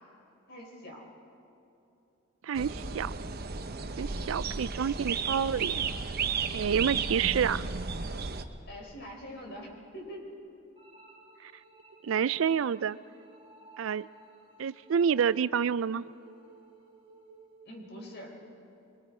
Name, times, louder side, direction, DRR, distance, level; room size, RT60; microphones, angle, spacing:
voice 1, 0.5-1.0 4.1-4.3 8.7-10.3 17.7-18.4, equal, 60° left, 0 dB, 4.5 m, -44 dB
voice 2, 2.4-3.1 4.0-5.8 6.5-7.7 11.4-11.5 12.0-13.0 13.8-14.1 14.6-16.0, right 7 dB, 75° right, 17 dB, 0.4 m, -28 dB
sound 1, 2.6-8.4, right 5 dB, 50° right, 0.9 m, -33 dB
sound 2, 10.8-17.7, right 3 dB, 25° right, 3.8 m, -56 dB
25.0 x 23.5 x 5.0 m, 2.8 s
head